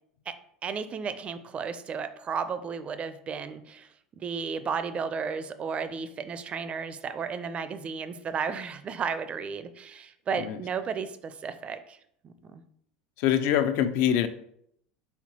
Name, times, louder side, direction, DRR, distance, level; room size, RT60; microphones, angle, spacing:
voice 1, 0.6-3.9 4.2-12.0 12.2-12.6, right 6 dB, 35° right, 12 dB, 0.4 m, -33 dB
voice 2, 13.2-14.3, left 10 dB, 60° left, 11 dB, 0.4 m, -24 dB
4.3 x 3.9 x 2.8 m, 0.71 s
hypercardioid pair, 80°, 4 cm